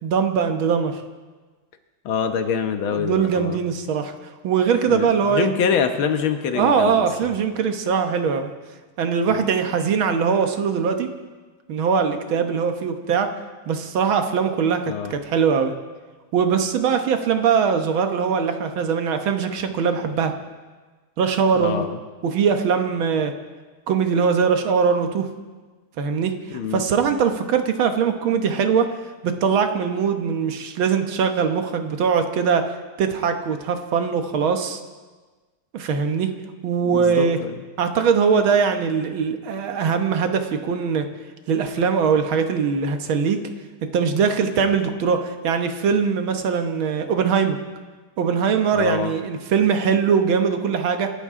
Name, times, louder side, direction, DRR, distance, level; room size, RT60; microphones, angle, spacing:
voice 1, 0.0-1.0 2.9-4.1 4.4-5.5 6.6-8.5 9.0-11.1 11.7-13.3 13.7-15.7 16.3-20.3 21.2-21.9 22.2-23.3 23.9-25.3 26.0-28.9 29.2-32.7 33.0-34.8 35.7-36.3 36.6-37.4 37.8-41.1 41.5-43.4 43.8-47.6 48.2-51.1, right 6 dB, 85° right, 6 dB, 2.0 m, -21 dB
voice 2, 2.1-3.6 4.9-7.3 9.3-9.4 14.9-15.1 21.5-22.0 26.5-26.8 36.8-37.6 48.7-49.1, left 7 dB, 85° left, 7 dB, 2.0 m, -25 dB
26.5 x 13.0 x 3.7 m, 1.3 s
omnidirectional pair, 2.2 m